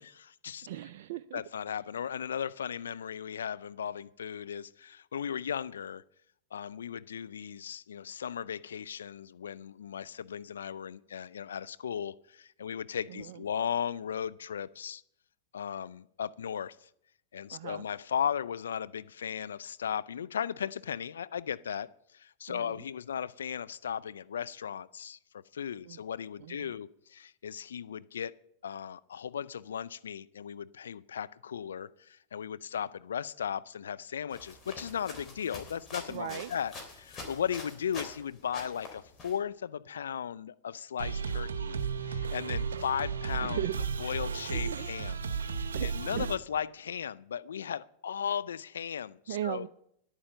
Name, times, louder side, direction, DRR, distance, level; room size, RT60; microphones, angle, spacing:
voice 1, 0.0-0.7 1.3-6.0 6.5-15.0 15.5-16.9 17.3-28.3 28.6-43.6 44.0-45.3 45.8-49.7, left 8 dB, 80° left, 16 dB, 0.4 m, -36 dB
voice 2, 0.6-1.4 13.1-13.4 17.5-17.8 22.5-22.8 25.8-26.0 26.4-26.7 36.1-36.5 43.4-43.7 44.6-45.2 45.7-45.9 46.2-46.3 49.3-49.7, right 12 dB, 65° right, 12 dB, 0.4 m, -38 dB
sound 1, 34.3-38.2 38.5-39.4, left 3 dB, 30° left, 3.5 m, -45 dB
sound 2, 41.0-46.4, right 6 dB, 80° right, 0.8 m, -34 dB
10.0 x 8.9 x 6.7 m, 0.72 s
hypercardioid pair, 95°, 0 cm